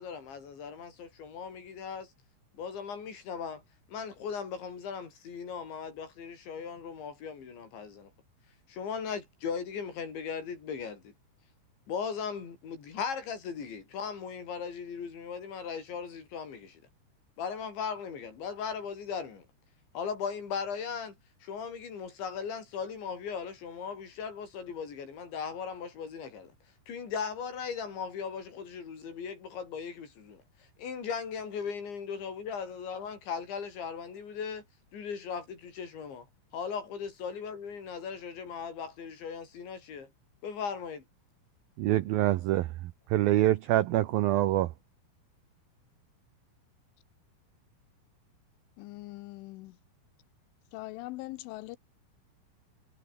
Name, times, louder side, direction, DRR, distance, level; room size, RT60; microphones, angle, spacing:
voice 1, 0.0-2.1 2.5-3.6 3.9-8.1 8.7-11.1 11.9-16.8 17.4-19.5 20.0-21.2 21.4-26.5 26.9-30.4 30.8-34.7 34.9-36.3 36.5-40.1 40.4-41.0, left 6 dB, 70° left, 7.4 m, -38 dB
voice 2, 41.8-44.7, right 15 dB, 85° right, 2.1 m, -26 dB
voice 3, 48.8-49.8 50.7-51.8, left 20 dB, 85° left, 3.2 m, -41 dB
omnidirectional pair, 5.5 m